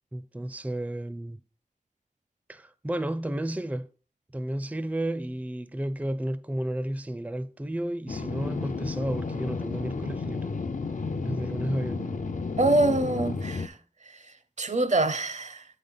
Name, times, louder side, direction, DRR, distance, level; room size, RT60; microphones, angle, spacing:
voice 1, 0.1-1.4 2.5-3.9 4.3-10.6 11.2-12.2, right 1 dB, 10° right, 0.4 m, -32 dB
sound 1, 8.1-13.7, left 4 dB, 65° left, 0.5 m, -32 dB
voice 2, 12.6-13.8 14.6-15.6, right 2 dB, 60° right, 0.6 m, -25 dB
7.7 x 5.2 x 3.9 m
wide cardioid pair, 50°, 14 cm